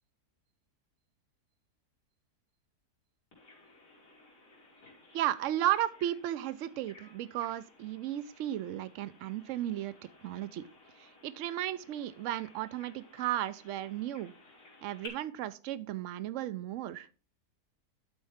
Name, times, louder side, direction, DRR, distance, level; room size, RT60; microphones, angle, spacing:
Bird vocalization bird call bird song, 3.3-15.1, left 3 dB, 90° left, 3.2 m, -57 dB
voice 1, 5.1-9.9 10.2-10.7 11.0-14.3 14.8-17.1, right 12 dB, 70° right, 15 dB, 0.7 m, -34 dB
11.5 x 4.3 x 3.5 m, 0.36 s
omnidirectional pair, 1.8 m